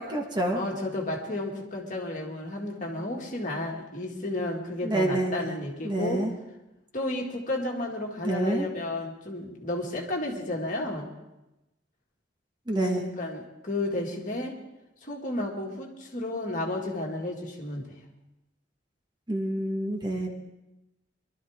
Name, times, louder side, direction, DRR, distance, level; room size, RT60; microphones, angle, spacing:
voice 1, 0.0-0.6 4.8-5.5 5.8-6.3 8.2-8.7 12.7-13.1 19.3-20.3, right 1 dB, 25° right, 1 dB, 1.4 m, -28 dB
voice 2, 0.6-6.2 6.9-11.1 12.8-14.6 15.0-17.9, left 2 dB, 40° left, -1 dB, 2.1 m, -32 dB
22.5 x 12.0 x 3.6 m, 0.96 s
head